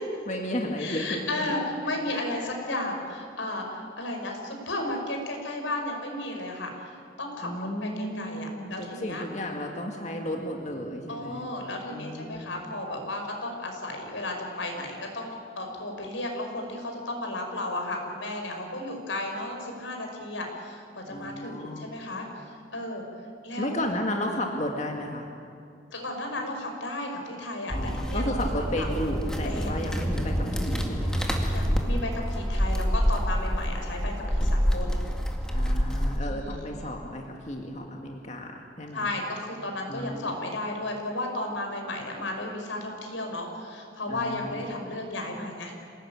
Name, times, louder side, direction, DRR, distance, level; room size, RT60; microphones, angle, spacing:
voice 1, 0.3-1.5 2.1-2.5 7.4-11.5 11.9-12.5 21.1-21.9 23.6-25.3 27.7-31.3 35.5-39.1 39.9-40.4 44.1-44.7, equal, 35° left, 1 dB, 2.0 m, -33 dB
voice 2, 0.8-7.5 7.8-9.2 11.1-23.0 23.4-23.8 25.9-28.9 29.4-29.9 31.5-35.0 36.2-36.6 38.9-45.7, left 1 dB, 85° left, 2 dB, 5.5 m, -34 dB
sound 1, 27.7-36.2, equal, 5° left, 2.1 m, -27 dB
27.5 x 19.0 x 8.8 m, 2.5 s
head